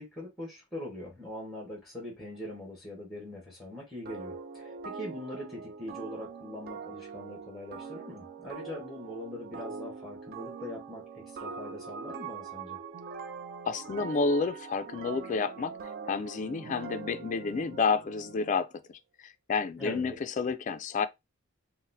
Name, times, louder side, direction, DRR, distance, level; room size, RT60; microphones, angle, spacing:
voice 1, 0.0-12.8 19.8-20.2, left 1 dB, ahead, 1.2 m, -42 dB
sound 1, 4.1-18.7, right 5 dB, 50° right, 0.4 m, -43 dB
voice 2, 13.7-15.8 16.1-18.7 19.2-21.1, left 4 dB, 40° left, 0.3 m, -30 dB
4.0 x 2.1 x 2.6 m
head